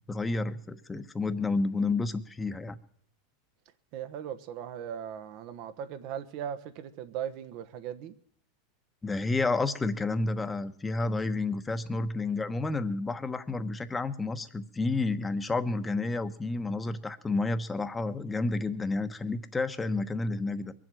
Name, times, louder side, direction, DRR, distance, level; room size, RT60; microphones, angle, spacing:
voice 1, 0.1-2.8 9.0-20.7, left 3 dB, 15° left, 1.1 m, -30 dB
voice 2, 3.9-8.1, right 9 dB, 55° right, 1.2 m, -38 dB
22.0 x 7.7 x 7.7 m
hypercardioid pair, 110°, 0 cm